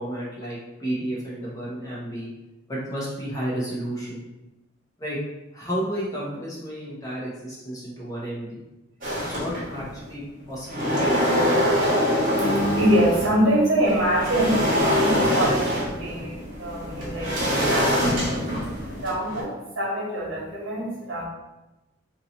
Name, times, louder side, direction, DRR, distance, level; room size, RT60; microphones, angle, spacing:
voice 1, 0.0-2.3 2.7-4.3 5.0-5.2 5.5-8.6 9.3-11.1, right 1 dB, 15° left, -7 dB, 1.0 m, -32 dB
sound 1, 9.0-10.0 10.4-13.4 13.8-19.4, equal, 45° right, 1.3 m, -24 dB
voice 2, 12.4-21.3, right 1 dB, 85° right, -3 dB, 1.2 m, -25 dB
2.9 x 2.8 x 3.9 m, 0.99 s
head